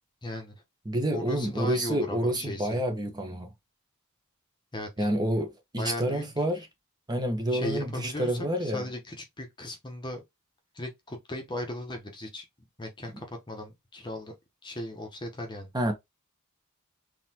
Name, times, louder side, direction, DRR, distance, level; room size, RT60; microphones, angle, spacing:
voice 1, 0.2-0.6 1.1-2.8 4.7-5.1 5.8-6.4 7.5-10.2 10.7-12.4 12.8-14.3 14.6-15.7, left 1 dB, 20° left, 1.0 m, -37 dB
voice 2, 0.9-3.5 5.0-6.7 7.1-8.9 13.1-13.2 15.7-15.9, right 1 dB, 20° right, 1.0 m, -28 dB
3.9 x 3.1 x 2.9 m
head